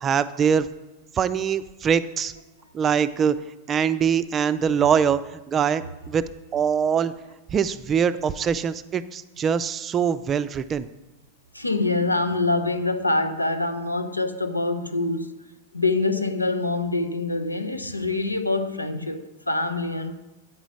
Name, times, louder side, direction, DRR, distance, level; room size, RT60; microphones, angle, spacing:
voice 1, 0.0-0.7 1.1-2.3 2.7-3.4 3.7-7.1 7.5-10.9, right 7 dB, 25° right, 0.4 m, -23 dB
voice 2, 11.5-15.3 15.7-20.1, left 2 dB, 85° left, 0.7 m, -25 dB
9.0 x 5.0 x 7.0 m
figure-of-eight pair, 90°, 0 cm